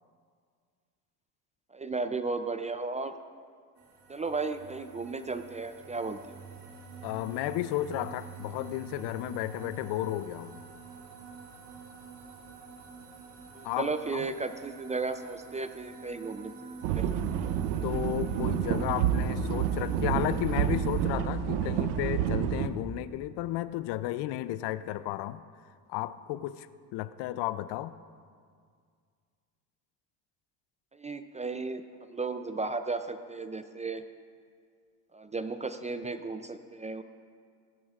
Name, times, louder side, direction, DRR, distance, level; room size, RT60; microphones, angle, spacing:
voice 1, 1.7-3.1 4.1-6.4 13.5-17.4 30.9-34.0 35.1-37.0, right 3 dB, 20° right, 0.3 m, -35 dB
sound 1, 3.8-21.1, right 5 dB, 60° right, 1.9 m, -48 dB
voice 2, 7.0-10.6 13.6-14.3 17.8-25.4 25.9-26.7 26.9-27.9, left 14 dB, 65° left, 0.5 m, -33 dB
sound 2, 16.8-22.7, right 9 dB, 85° right, 0.7 m, -29 dB
17.5 x 10.5 x 2.4 m
supercardioid pair, 80°, 45 cm